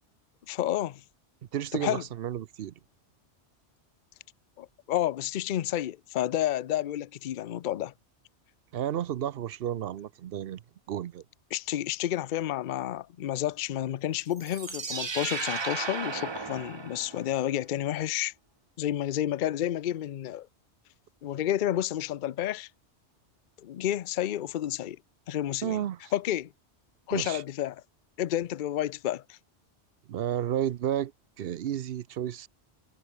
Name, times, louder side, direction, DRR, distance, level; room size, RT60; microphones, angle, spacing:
voice 1, 0.5-1.0 1.7-2.0 4.6-7.9 11.5-18.3 18.8-20.5 21.2-22.7 23.6-25.0 25.3-25.8 26.1-26.5 27.1-27.8 28.2-29.4, left 12 dB, 55° left, 0.6 m, -30 dB
voice 2, 1.5-2.7 8.7-10.6 10.9-11.2 25.6-26.1 27.1-27.4 30.1-31.1 31.4-32.5, right 11 dB, 60° right, 0.8 m, -32 dB
sound 1, 14.3-17.4, right 4 dB, 30° right, 0.7 m, -35 dB
omnidirectional pair, 1.2 m